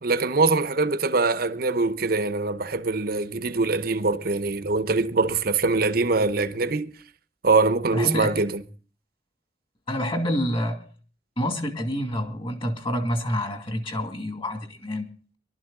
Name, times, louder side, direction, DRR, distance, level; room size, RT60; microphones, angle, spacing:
voice 1, 0.0-6.9 7.4-8.6, right 3 dB, 55° right, 0.9 m, -23 dB
voice 2, 7.9-8.3 9.9-10.8 11.4-15.1, equal, 30° left, 2.3 m, -27 dB
22.0 x 12.5 x 3.8 m
head